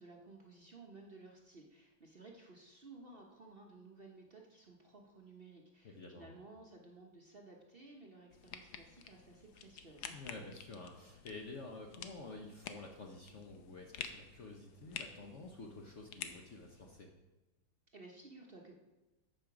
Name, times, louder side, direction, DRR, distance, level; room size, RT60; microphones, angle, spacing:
voice 1, 0.0-10.2 17.9-18.8, right 3 dB, 35° right, 0 dB, 1.0 m, -56 dB
voice 2, 5.8-6.4 10.1-17.1, left 3 dB, 50° left, 2 dB, 1.0 m, -50 dB
sound 1, 8.3-17.0, left 8 dB, 85° left, 1.6 m, -50 dB
8.7 x 7.8 x 6.0 m, 1.1 s
omnidirectional pair, 2.0 m